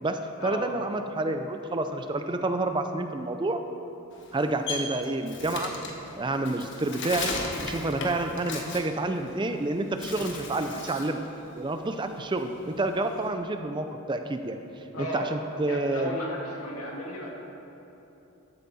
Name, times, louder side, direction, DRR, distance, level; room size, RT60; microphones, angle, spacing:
voice 1, 0.0-3.6 4.3-5.7 6.2-7.3 7.6-11.2 11.6-14.6 15.1-16.2, right 2 dB, 20° right, 7 dB, 0.4 m, -29 dB
Bird, 4.1-9.6 9.9-11.2 11.5-13.3, left 3 dB, 55° left, 1.3 m, -36 dB
voice 2, 14.9-15.3 15.6-17.3, left 1 dB, 80° left, -2 dB, 2.1 m, -34 dB
14.0 x 8.2 x 4.2 m, 3.0 s
head